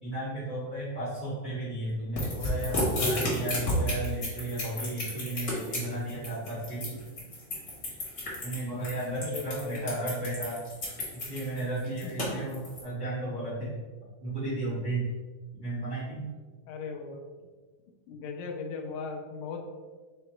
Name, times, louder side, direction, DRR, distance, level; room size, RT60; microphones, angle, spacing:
voice 1, 0.0-7.0 8.4-10.6 11.1-13.8 14.2-15.1 15.6-16.3, right 1 dB, 70° right, -8 dB, 0.4 m, -34 dB
sound 1, 2.2-12.8, left 1 dB, 45° left, 1.0 m, -32 dB
voice 2, 9.2-9.9 12.2-12.3 16.7-17.3 18.1-19.7, left 4 dB, 80° left, 2 dB, 1.8 m, -38 dB
5.6 x 2.0 x 4.4 m, 1.4 s
omnidirectional pair, 3.7 m